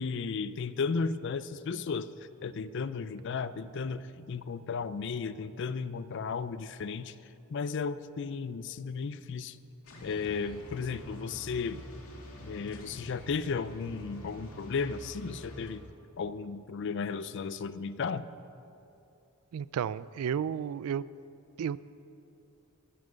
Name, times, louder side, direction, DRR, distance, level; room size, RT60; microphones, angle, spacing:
voice 1, 0.0-2.1 2.4-7.1 7.5-9.6 10.0-11.8 12.4-15.8 16.2-18.2, left 5 dB, 55° left, 15 dB, 0.4 m, -34 dB
sound 1, 9.8-15.7, equal, 80° left, 2.2 m, -47 dB
voice 2, 19.5-21.0 21.6-21.8, right 8 dB, 80° right, 18 dB, 0.3 m, -32 dB
15.5 x 7.4 x 6.3 m, 2.8 s
head